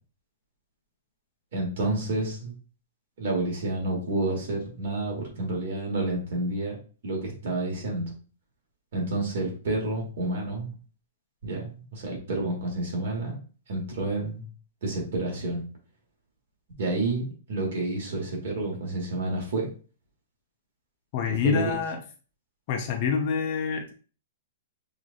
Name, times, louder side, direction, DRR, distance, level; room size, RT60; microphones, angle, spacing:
voice 1, 1.5-2.5 3.2-6.8 7.0-8.1 8.9-10.7 11.4-13.4 13.7-14.5 14.8-15.6 16.8-19.7 21.3-21.7, right 2 dB, 50° right, -1 dB, 1.5 m, -29 dB
voice 2, 21.1-22.0 22.7-23.9, left 7 dB, 30° left, 4 dB, 0.4 m, -27 dB
5.9 x 2.5 x 2.6 m, 0.38 s
hypercardioid pair, 180°, 0 cm